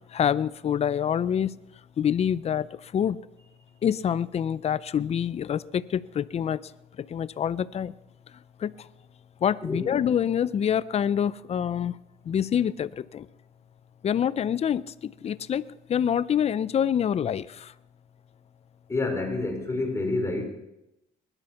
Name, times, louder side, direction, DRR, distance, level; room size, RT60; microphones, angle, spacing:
voice 1, 0.1-1.6 2.0-3.2 3.8-6.6 7.0-7.9 8.6-8.9 9.4-12.0 12.3-13.3 14.0-17.7, left 9 dB, 40° left, 18 dB, 0.6 m, -26 dB
voice 2, 9.6-9.9 18.9-20.5, left 2 dB, 15° left, 4 dB, 3.5 m, -28 dB
20.5 x 12.0 x 5.8 m, 0.89 s
cardioid pair, 110°, 17 cm